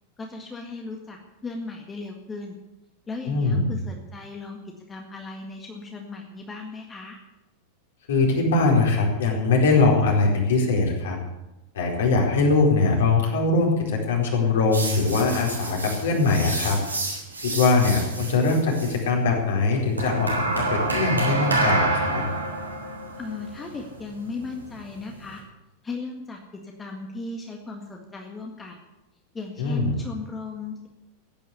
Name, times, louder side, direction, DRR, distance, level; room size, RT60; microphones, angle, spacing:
voice 1, 0.2-2.6 3.1-4.6 4.9-7.2 23.2-25.4 25.8-28.8 29.3-30.9, left 3 dB, 15° left, 2 dB, 1.8 m, -36 dB
voice 2, 3.3-3.7 8.1-11.2 11.7-16.8 17.4-22.2 29.6-29.9, left 3 dB, 60° left, -1 dB, 4.4 m, -22 dB
sound 1, 14.7-19.0 20.0-25.4, right 2 dB, 85° right, 3.7 m, -28 dB
15.5 x 9.6 x 8.2 m, 0.98 s
figure-of-eight pair, 90°, 0 cm